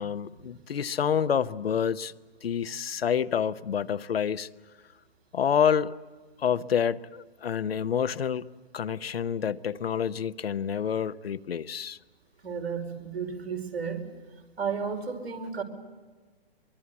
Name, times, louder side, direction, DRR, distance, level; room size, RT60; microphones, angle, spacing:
voice 1, 0.0-2.1 2.4-4.5 5.3-5.9 6.4-8.5 8.7-12.0, left 8 dB, 70° left, 0.9 m, -28 dB
voice 2, 12.4-14.1 14.6-15.6, right 6 dB, 80° right, 4.9 m, -33 dB
24.0 x 23.5 x 8.4 m
figure-of-eight pair, 120°, 31 cm